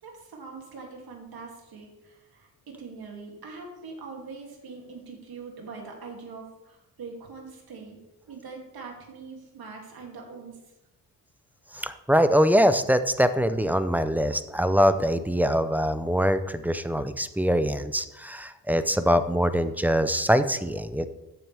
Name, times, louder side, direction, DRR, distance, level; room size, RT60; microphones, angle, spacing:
voice 1, 0.0-8.0 8.3-10.6, right 4 dB, 65° right, 0 dB, 2.7 m, -43 dB
voice 2, 11.7-21.0, equal, 5° right, 11 dB, 0.4 m, -23 dB
13.5 x 9.4 x 3.4 m, 0.98 s
wide cardioid pair, 145°, 39 cm